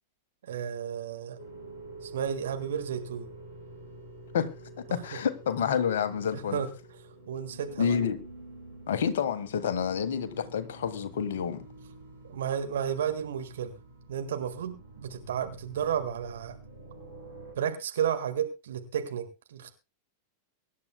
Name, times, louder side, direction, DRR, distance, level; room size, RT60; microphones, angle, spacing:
voice 1, 0.4-1.4 2.0-3.3 4.9-5.2 6.3-6.7 7.3-8.0 12.2-13.7 14.1-16.6 17.5-19.7, right 8 dB, 60° right, 1.7 m, -32 dB
sound 1, 1.4-17.5, right 2 dB, 90° right, 7.7 m, -48 dB
voice 2, 4.8-6.6 7.8-8.2 8.9-11.6, left 7 dB, 60° left, 1.4 m, -29 dB
23.5 x 10.5 x 2.2 m
figure-of-eight pair, 90°, 0 cm